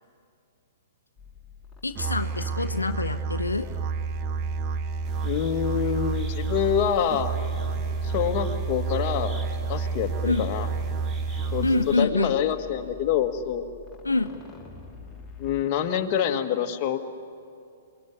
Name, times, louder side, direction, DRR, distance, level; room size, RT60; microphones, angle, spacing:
sound 1, 1.2-15.6, left 6 dB, 10° left, 3.2 m, -44 dB
voice 1, 1.8-3.7 10.2-10.5 11.6-12.4 14.0-14.3, left 3 dB, 85° left, 7 dB, 1.0 m, -26 dB
Musical instrument, 2.0-11.9, right 5 dB, 35° right, 0.8 m, -30 dB
sound 2, 5.0-12.0, right 2 dB, 15° right, 2.6 m, -43 dB
voice 2, 5.2-7.3 8.0-9.4 9.7-10.7 11.5-11.7 12.0-13.7 15.4-17.0, left 9 dB, 35° left, 4 dB, 1.8 m, -26 dB
28.0 x 20.5 x 9.6 m, 2.5 s
figure-of-eight pair, 115°, 0 cm